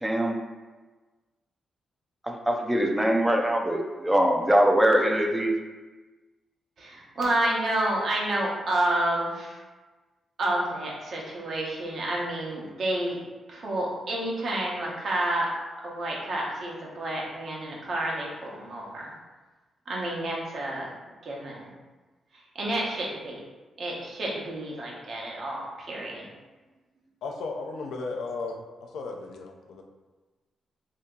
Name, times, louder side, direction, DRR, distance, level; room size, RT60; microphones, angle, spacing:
voice 1, 0.0-0.4 2.2-5.5, right 1 dB, 10° right, 2 dB, 0.4 m, -23 dB
voice 2, 6.8-9.6 10.4-13.2 13.5-15.5 15.8-19.1 19.9-20.9 21.2-21.7 22.5-23.4 23.8-26.3, right 1 dB, 55° right, -3 dB, 0.9 m, -29 dB
voice 3, 27.2-29.8, left 3 dB, 90° left, 1 dB, 0.4 m, -35 dB
2.8 x 2.8 x 3.6 m, 1.3 s
cardioid pair, 115°, 0 cm